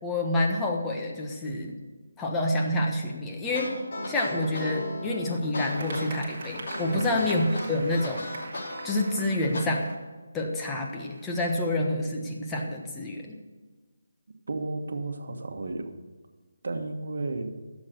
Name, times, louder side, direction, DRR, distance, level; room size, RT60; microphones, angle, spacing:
voice 1, 0.0-1.8 2.2-3.7 4.1-8.2 8.8-9.9 10.3-13.4, left 1 dB, 10° left, 0 dB, 1.3 m, -28 dB
sound 1, 3.5-9.6, left 1 dB, 55° left, 3.7 m, -36 dB
sound 2, 5.6-9.9 10.7-11.5, right 3 dB, 40° right, 1.8 m, -43 dB
voice 2, 6.9-7.3 14.5-15.9 16.6-17.6, right 2 dB, 65° right, 5 dB, 1.4 m, -33 dB
12.0 x 7.4 x 6.6 m, 1.3 s
figure-of-eight pair, 160°, 0 cm